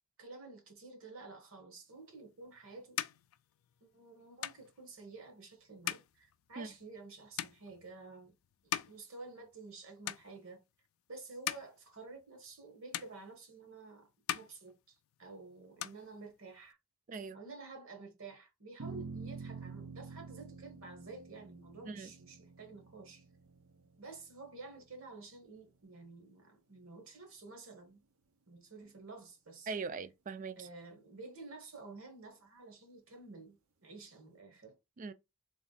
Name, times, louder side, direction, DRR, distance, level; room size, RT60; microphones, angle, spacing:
voice 1, 0.2-3.0 3.8-8.3 8.9-10.6 11.1-14.1 14.3-16.8 17.3-23.2 24.0-28.0 28.5-29.7 30.6-33.6 33.8-34.8, right 3 dB, 70° right, 1.4 m, -51 dB
sound 1, 2.1-9.8 10.0-10.7 11.2-12.7 12.9-13.8 14.1-15.3 15.6-16.7, left 12 dB, 70° left, 0.3 m, -43 dB
sound 2, 18.8-25.3, right 4 dB, 90° right, 0.9 m, -48 dB
voice 2, 29.7-30.7 35.0-35.1, right 4 dB, 35° right, 0.3 m, -41 dB
3.5 x 3.1 x 4.0 m
head